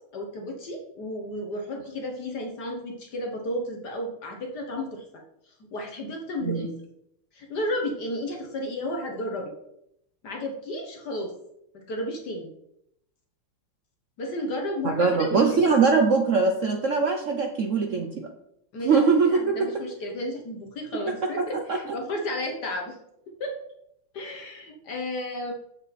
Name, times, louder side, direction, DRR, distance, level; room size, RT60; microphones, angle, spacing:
voice 1, 0.1-5.0 5.5-6.7 7.3-9.5 10.2-11.3 11.7-12.5 14.2-15.6 18.7-23.0 23.4-23.5 24.1-25.5, left 1 dB, 55° left, 2 dB, 1.5 m, -33 dB
voice 2, 15.0-18.3 18.8-19.7 21.2-21.4, right 4 dB, 85° right, 4 dB, 0.6 m, -22 dB
7.4 x 7.0 x 4.1 m, 0.78 s
omnidirectional pair, 2.3 m